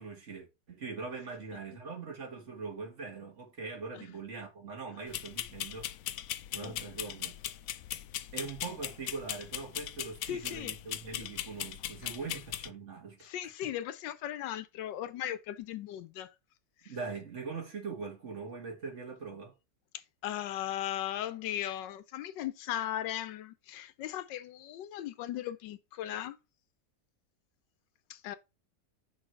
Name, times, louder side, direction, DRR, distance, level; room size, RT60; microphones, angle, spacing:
voice 1, 0.0-5.9 6.5-7.4 8.3-13.3 16.9-19.5, right 4 dB, 45° right, 2.1 m, -42 dB
sound 1, 5.1-12.7, left 12 dB, 75° left, 0.8 m, -39 dB
voice 2, 10.2-10.7 13.2-16.3 16.8-16.9 19.9-26.4 28.1-28.4, left 12 dB, 90° left, 1.3 m, -37 dB
6.3 x 4.0 x 4.5 m
omnidirectional pair, 1.9 m